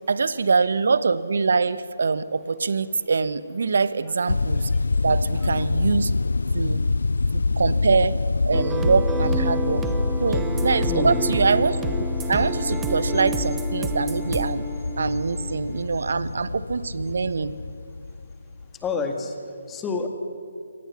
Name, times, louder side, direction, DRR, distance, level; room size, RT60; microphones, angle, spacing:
voice 1, 0.1-4.7 5.0-6.1 6.5-6.8 7.3-8.2 8.5-9.8 10.2-14.7 15.0-17.6, right 4 dB, 60° right, 16 dB, 1.0 m, -24 dB
sound 1, 4.3-18.9, left 3 dB, 75° left, 0.5 m, -26 dB
sound 2, 8.5-15.9, right 3 dB, 10° right, 1.0 m, -30 dB
voice 2, 10.9-11.2 18.7-20.1, left 4 dB, 10° left, 5 dB, 2.0 m, -28 dB
25.0 x 18.5 x 7.2 m, 2.4 s
figure-of-eight pair, 150°, 0 cm